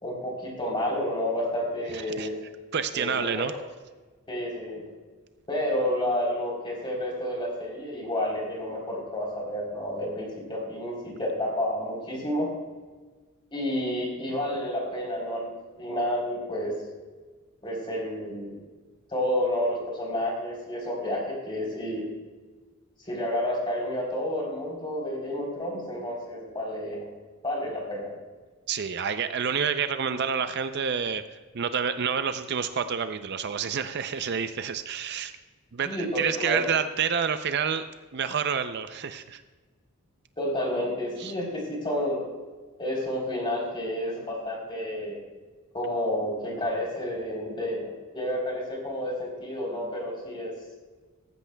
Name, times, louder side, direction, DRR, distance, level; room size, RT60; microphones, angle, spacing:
voice 1, 0.0-2.4 2.9-3.5 4.3-4.8 5.5-12.5 13.5-16.7 17.6-18.6 19.1-22.1 23.0-27.1 27.4-28.1 35.8-36.6 40.4-42.2 42.8-45.2 45.7-50.5, left 1 dB, 20° left, -1 dB, 3.5 m, -30 dB
voice 2, 2.7-3.5 28.7-35.3 35.7-37.9 38.1-39.4 41.2-41.3, right 7 dB, 50° right, 10 dB, 0.5 m, -28 dB
16.0 x 14.5 x 2.3 m, 1.4 s
head